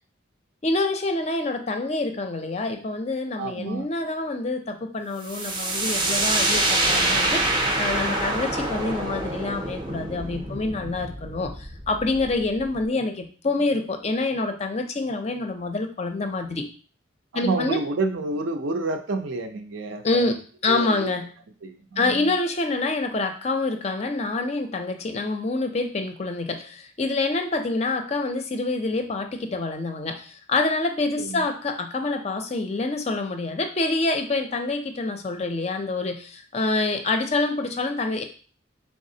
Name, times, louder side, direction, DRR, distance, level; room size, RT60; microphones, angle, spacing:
voice 1, 0.6-16.6 17.3-17.8 20.0-21.3 22.0-38.2, left 3 dB, 30° left, 5 dB, 0.4 m, -26 dB
voice 2, 3.4-3.8 17.3-20.4 20.7-21.1 21.6-22.2 31.2-31.4, right 3 dB, 70° right, 6 dB, 0.5 m, -29 dB
sound 1, 5.2-12.8, right 2 dB, 25° right, 0.5 m, -26 dB
4.0 x 3.5 x 2.7 m, 0.41 s
head